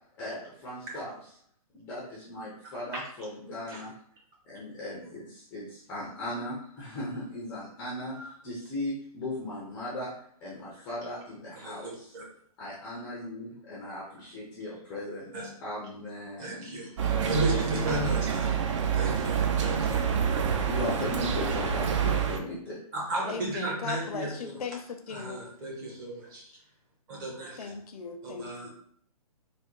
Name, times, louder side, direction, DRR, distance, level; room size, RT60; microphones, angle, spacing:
voice 1, 0.2-1.1 1.7-3.9 4.5-10.1 10.4-12.1 12.6-15.3 15.6-16.7 20.5-22.8, left 1 dB, 10° left, -5 dB, 0.4 m, -37 dB
voice 2, 11.5-12.2 15.3-15.5 16.4-18.5 18.9-20.0 22.9-24.5 25.1-26.5 27.1-27.7 28.2-28.7, right 1 dB, 30° right, -3 dB, 1.0 m, -35 dB
sound 1, 17.0-22.4, right 7 dB, 50° right, 0.4 m, -27 dB
voice 3, 23.3-25.4 27.6-28.7, left 5 dB, 75° left, 7 dB, 0.5 m, -38 dB
3.3 x 2.1 x 3.0 m, 0.63 s
hypercardioid pair, 155°, 20 cm